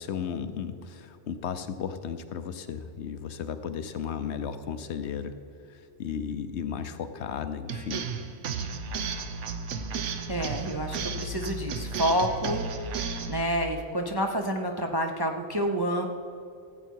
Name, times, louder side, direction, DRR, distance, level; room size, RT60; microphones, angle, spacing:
voice 1, 0.0-5.4 5.7-8.1, left 7 dB, 70° left, 10 dB, 0.9 m, -34 dB
sound 1, 7.7-13.4, right 5 dB, 80° right, 1.1 m, -33 dB
voice 2, 10.3-12.6 12.9-16.1, equal, 30° right, 3 dB, 0.4 m, -29 dB
14.5 x 8.2 x 4.6 m, 2.5 s
omnidirectional pair, 1.3 m